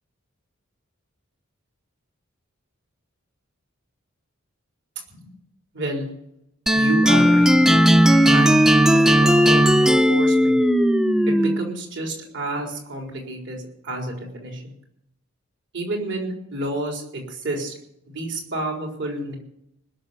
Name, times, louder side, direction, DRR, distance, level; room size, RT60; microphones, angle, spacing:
voice 1, 5.7-6.1 6.7-7.5 8.3-8.6 8.9-10.6 11.3-14.7 15.7-17.7 18.1-19.4, right 1 dB, 60° right, 1 dB, 4.2 m, -30 dB
sound 1, 6.7-11.8, equal, ahead, 0.6 m, -16 dB
20.0 x 6.9 x 9.5 m, 0.75 s
head